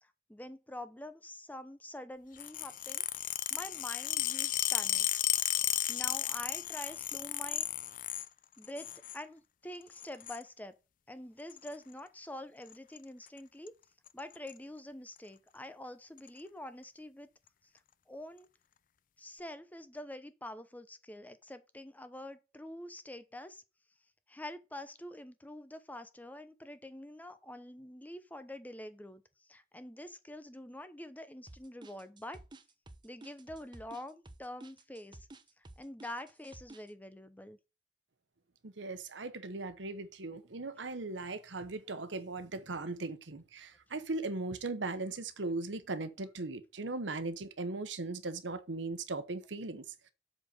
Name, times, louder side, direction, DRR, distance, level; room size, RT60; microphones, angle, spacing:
voice 1, 0.0-5.1 5.5-7.7 8.6-10.7 11.1-13.7 14.1-17.3 18.1-18.5 19.2-23.6 24.3-32.4 33.0-35.3 35.6-37.6, left 1 dB, 10° left, 0.7 m, -46 dB
sound 1, 2.4-8.3 8.6-9.2 9.9-10.4 11.5-11.7 12.7-13.0 13.3-13.4 13.7-13.8 14.1-14.5 15.2-15.3 16.2-16.3, left 13 dB, 45° left, 0.5 m, -34 dB
sound 2, 31.5-36.9, right 2 dB, 25° right, 0.8 m, -52 dB
voice 2, 38.6-50.1, right 3 dB, 90° right, 1.0 m, -38 dB
7.7 x 4.3 x 6.4 m
head